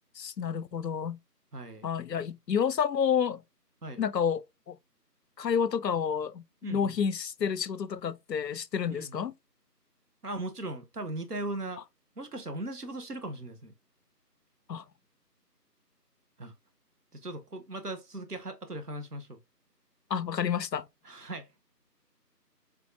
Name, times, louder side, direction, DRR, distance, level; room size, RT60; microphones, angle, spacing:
voice 1, 0.2-1.2 1.8-3.4 4.0-4.8 5.4-6.4 6.7-9.3 14.7-14.8 20.1-20.9, left 7 dB, 80° left, 0.5 m, -29 dB
voice 2, 1.5-1.9 3.8-4.0 6.6-7.0 8.9-9.2 10.2-11.8 12.2-13.7 16.4-16.5 17.1-19.4 21.0-21.5, right 2 dB, 65° right, 0.9 m, -38 dB
3.6 x 3.5 x 2.5 m
figure-of-eight pair, 175°, 49 cm